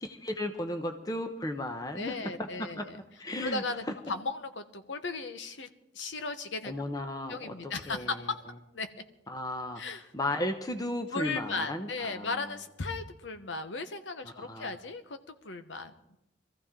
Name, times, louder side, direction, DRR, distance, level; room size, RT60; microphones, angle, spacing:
voice 1, 0.0-2.2 2.6-2.8 3.2-3.6 6.6-8.2 9.3-9.8 10.1-12.5 14.4-14.7, left 1 dB, 20° left, 6 dB, 0.9 m, -35 dB
voice 2, 2.0-3.0 3.4-5.7 5.9-6.7 7.3-8.4 8.7-8.9 9.8-10.1 11.1-16.2, left 3 dB, 80° left, 8 dB, 1.1 m, -36 dB
23.0 x 14.5 x 3.7 m, 0.86 s
head